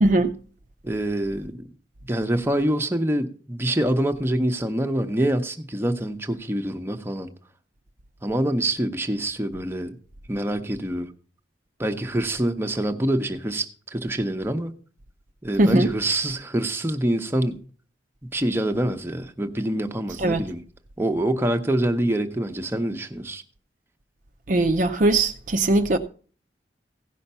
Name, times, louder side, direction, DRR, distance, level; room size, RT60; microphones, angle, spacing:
voice 1, 0.0-0.3 15.6-15.9 20.2-20.4 24.5-26.0, right 2 dB, 45° right, 0.6 m, -20 dB
voice 2, 0.8-1.6 2.1-7.3 8.2-10.0 10.3-11.1 11.8-14.7 15.4-17.6 18.3-20.6 21.0-23.4, right 1 dB, 15° right, 0.8 m, -25 dB
16.0 x 5.7 x 5.5 m
head